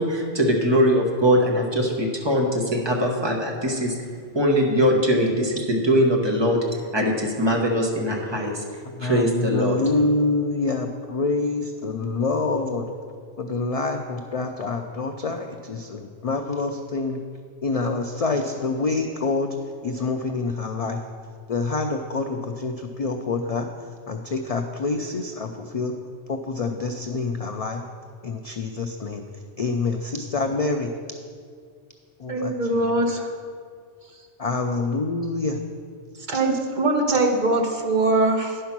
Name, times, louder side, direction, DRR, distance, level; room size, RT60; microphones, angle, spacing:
voice 1, 0.0-4.0 4.3-8.6 9.0-9.8, equal, 25° right, -1 dB, 1.2 m, -21 dB
voice 2, 8.9-12.8 13.4-17.2 17.6-19.5 19.8-21.0 21.5-23.7 24.1-25.9 26.3-27.8 28.2-29.2 29.6-30.9 32.2-32.5 34.4-35.6 36.3-36.4, left 3 dB, 65° left, 5 dB, 0.3 m, -26 dB
voice 3, 32.3-33.3 36.3-38.6, right 2 dB, 45° right, 2 dB, 1.0 m, -22 dB
10.0 x 5.6 x 6.0 m, 2.1 s
omnidirectional pair, 1.2 m